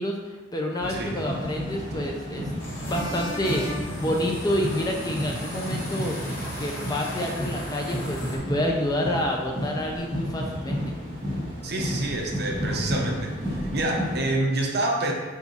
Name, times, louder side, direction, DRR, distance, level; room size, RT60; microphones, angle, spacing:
voice 1, 0.0-6.2 6.6-10.9, left 1 dB, 20° left, 0 dB, 0.6 m, -29 dB
sound 1, 0.8-14.3, equal, 25° right, 1.5 m, -32 dB
sound 2, 2.6-8.4, equal, 75° left, 2.1 m, -36 dB
voice 2, 11.6-13.4 13.7-15.1, right 2 dB, 50° right, 0 dB, 0.9 m, -27 dB
5.5 x 4.7 x 4.1 m, 1.3 s
head